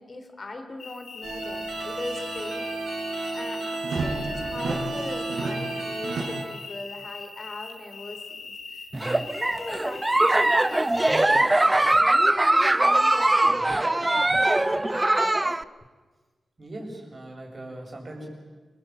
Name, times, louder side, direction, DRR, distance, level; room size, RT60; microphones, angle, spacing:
voice 1, 0.0-2.7 3.3-15.5, left 2 dB, 40° left, 6 dB, 3.4 m, -39 dB
sound 1, 0.8-11.3, left 4 dB, 85° left, 5.8 m, -41 dB
sound 2, 1.2-6.4, right 3 dB, 80° right, 6.0 m, -31 dB
Giggle, 8.9-15.6, right 1 dB, 15° right, 0.8 m, -21 dB
voice 2, 13.5-13.8 16.6-18.3, right 1 dB, 40° right, 1 dB, 7.5 m, -40 dB
28.0 x 21.0 x 9.0 m, 1.4 s
wide cardioid pair, 95°, 0 cm